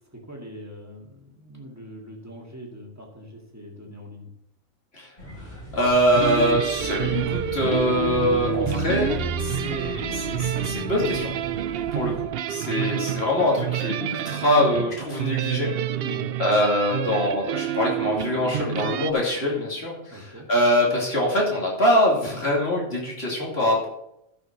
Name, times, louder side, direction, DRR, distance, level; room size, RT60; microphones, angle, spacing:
voice 1, 0.1-4.3 16.0-16.3 20.1-20.5, equal, 10° right, -1 dB, 2.2 m, -41 dB
sound 1, 5.2-12.2, left 1 dB, 35° left, 3.7 m, -34 dB
voice 2, 5.7-9.1 9.4-11.3 11.9-15.7 16.4-23.9, left 1 dB, 50° left, -3 dB, 3.1 m, -23 dB
sound 2, 6.1-19.1, right 11 dB, 65° right, 0.6 m, -28 dB
12.0 x 5.5 x 6.0 m, 0.80 s
omnidirectional pair, 1.3 m